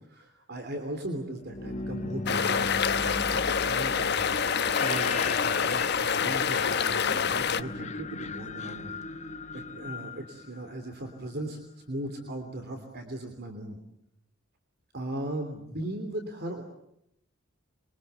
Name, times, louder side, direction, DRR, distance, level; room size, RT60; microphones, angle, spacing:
voice 1, 0.0-4.4 4.8-11.6 11.9-13.8 14.9-16.6, right 1 dB, 55° right, 6 dB, 3.2 m, -38 dB
sound 1, 1.4-11.2, left 3 dB, 35° left, 1.0 m, -38 dB
sound 2, 2.3-7.6, left 6 dB, 55° left, 1.1 m, -27 dB
26.5 x 24.0 x 8.2 m, 0.79 s
head